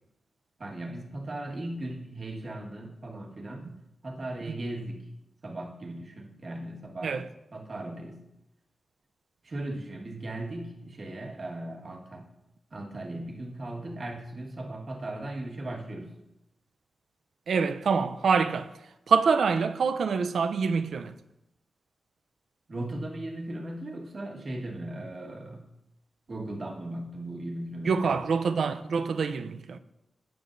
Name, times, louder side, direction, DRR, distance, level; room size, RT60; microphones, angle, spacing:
voice 1, 0.6-3.7 4.0-5.1 5.4-7.1 7.5-8.2 9.4-12.3 12.7-16.1 22.7-25.6 26.3-28.1, right 1 dB, 45° right, 1.6 m, -37 dB
voice 2, 17.5-18.7 19.1-21.2 27.8-29.8, right 5 dB, 80° right, 0.5 m, -25 dB
17.5 x 7.0 x 2.6 m
wide cardioid pair, 130°, 0 cm